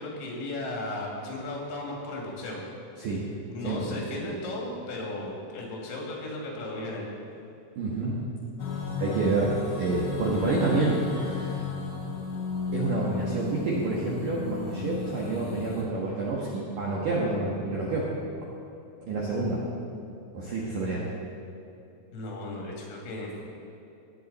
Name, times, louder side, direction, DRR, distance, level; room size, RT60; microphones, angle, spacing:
voice 1, 0.0-2.7 3.5-7.1 22.1-23.5, left 2 dB, 85° left, -2 dB, 5.0 m, -35 dB
voice 2, 3.6-3.9 7.8-8.2 8.6-8.7 9.0-11.6 12.7-18.1 19.0-19.6 20.3-21.1, right 3 dB, 70° right, -5 dB, 2.1 m, -28 dB
sound 1, 8.6-15.8, left 4 dB, 70° left, 3.3 m, -34 dB
18.5 x 8.6 x 4.1 m, 2.8 s
omnidirectional pair, 5.8 m